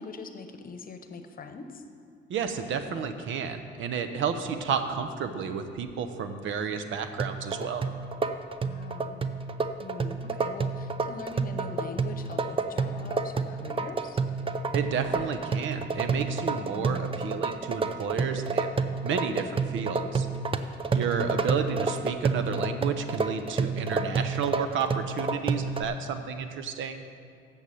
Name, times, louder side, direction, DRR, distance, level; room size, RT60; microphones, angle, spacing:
voice 1, 0.0-1.8 8.6-9.2 9.8-14.2 16.7-17.1 21.2-21.6, left 4 dB, 45° left, 7 dB, 0.9 m, -42 dB
voice 2, 2.3-7.8 14.7-20.3 20.9-27.1, right 6 dB, 75° right, 8 dB, 0.8 m, -31 dB
sound 1, 7.2-25.8, right 4 dB, 25° right, 0.5 m, -29 dB
7.4 x 7.1 x 8.2 m, 2.3 s
cardioid pair, 90°, 20 cm